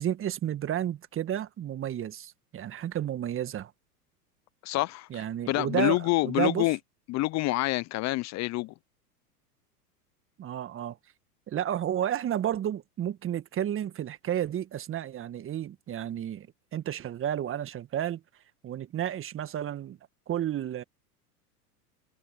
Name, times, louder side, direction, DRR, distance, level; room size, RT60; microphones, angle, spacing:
voice 1, 0.0-3.7 5.1-6.7 10.4-11.0 11.5-16.5 16.7-18.2 18.6-20.0 20.3-20.8, right 10 dB, 25° right, 1.6 m, -31 dB
voice 2, 4.6-6.8 7.1-8.7, left 19 dB, 35° left, 0.9 m, -27 dB
hypercardioid pair, 95°, 47 cm